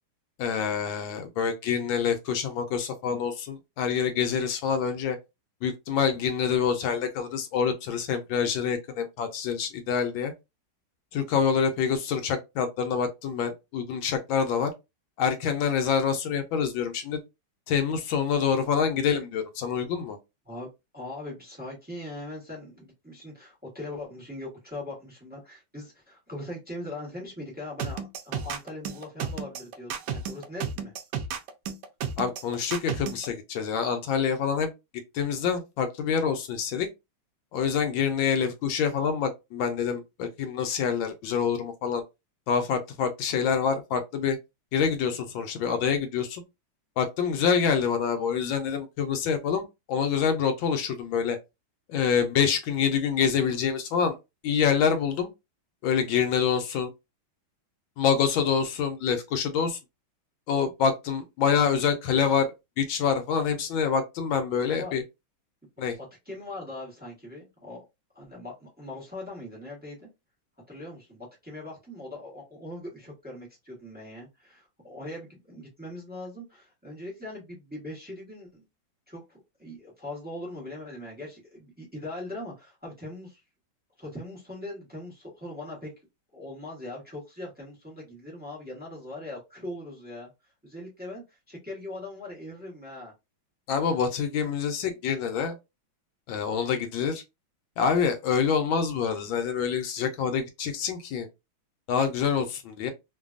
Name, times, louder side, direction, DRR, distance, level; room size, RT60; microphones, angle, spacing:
voice 1, 0.4-5.2 5.6-10.3 11.1-14.7 15.2-17.2 17.7-20.2 32.2-34.7 35.1-36.9 37.5-42.0 42.5-44.4 44.7-46.4 47.0-51.4 51.9-54.2 54.4-55.3 55.8-56.9 58.0-59.8 60.5-62.5 62.8-65.0 65.8-66.0 93.7-95.6 96.3-97.2 97.8-101.3 101.9-102.9, left 7 dB, 75° left, 1.3 m, -26 dB
voice 2, 20.9-30.9 64.7-65.0 65.8-67.8 68.1-70.1 70.7-78.6 79.1-83.4 84.0-85.9 86.3-90.3 90.6-93.1, left 1 dB, 15° right, 0.3 m, -40 dB
sound 1, 27.8-33.3, right 7 dB, 75° right, 1.0 m, -32 dB
3.2 x 2.2 x 2.4 m
omnidirectional pair, 2.2 m